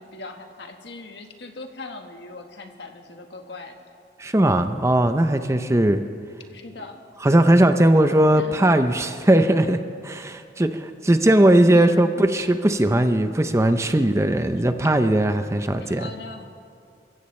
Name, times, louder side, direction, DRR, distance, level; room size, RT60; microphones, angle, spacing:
voice 1, 0.0-3.8 6.5-7.0 8.3-8.6 11.7-12.1 15.7-16.5, left 3 dB, 70° left, 4 dB, 1.5 m, -39 dB
voice 2, 4.2-6.0 7.2-16.1, right 1 dB, 15° right, 8 dB, 0.6 m, -19 dB
27.5 x 15.5 x 3.2 m, 2.4 s
head